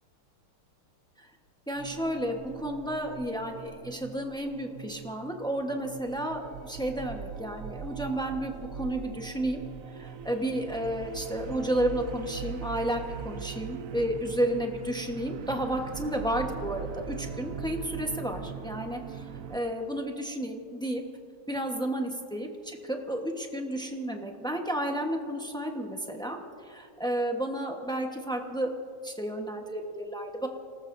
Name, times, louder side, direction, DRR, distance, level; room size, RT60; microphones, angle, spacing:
voice 1, 1.7-9.6 9.9-21.0 21.5-28.7 29.0-30.5, right 1 dB, 5° left, 2 dB, 0.4 m, -32 dB
sound 1, 1.7-19.6, right 7 dB, 90° right, 0.7 m, -41 dB
28.5 x 19.0 x 2.6 m, 2.4 s
omnidirectional pair, 2.3 m